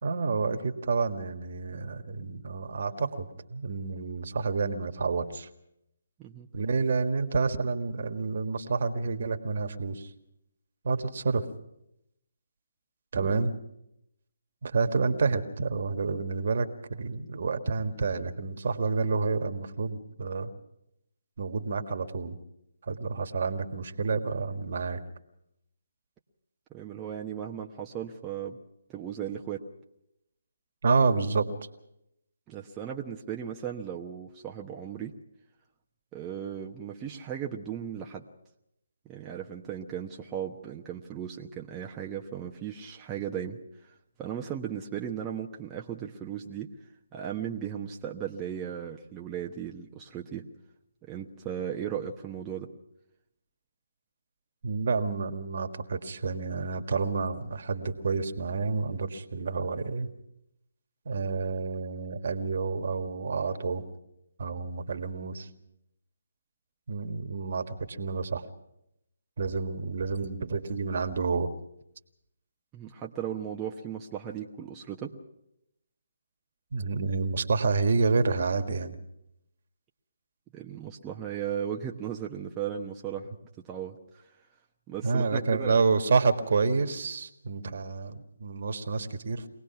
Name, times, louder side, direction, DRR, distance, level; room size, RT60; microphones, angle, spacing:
voice 1, 0.0-5.5 6.5-10.1 10.8-11.5 13.1-13.5 14.6-20.5 21.4-22.4 22.8-25.0 30.8-31.5 54.6-60.1 61.1-63.8 64.4-65.5 66.9-68.5 69.4-71.5 76.7-79.0 85.0-89.5, right 4 dB, 55° right, 7 dB, 1.8 m, -29 dB
voice 2, 26.7-28.6 28.9-29.6 32.5-35.1 36.1-38.2 39.0-43.6 44.2-46.7 47.1-50.4 51.0-52.7 72.7-75.1 80.5-83.4 83.6-84.2 84.9-85.8, right 9 dB, 15° right, 0 dB, 1.1 m, -36 dB
24.0 x 19.0 x 5.9 m, 0.81 s
figure-of-eight pair, 155°, 0 cm